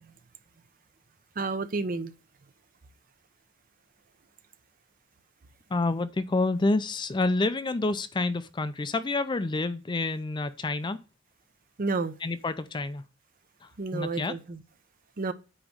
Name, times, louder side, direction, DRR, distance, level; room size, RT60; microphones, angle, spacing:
voice 1, 1.4-2.1 11.8-12.1 13.8-14.6 15.2-15.3, right 3 dB, 45° right, 0.6 m, -30 dB
voice 2, 5.7-11.0 12.2-13.0 13.9-14.3, left 2 dB, 25° left, 0.4 m, -28 dB
8.7 x 3.1 x 6.3 m
head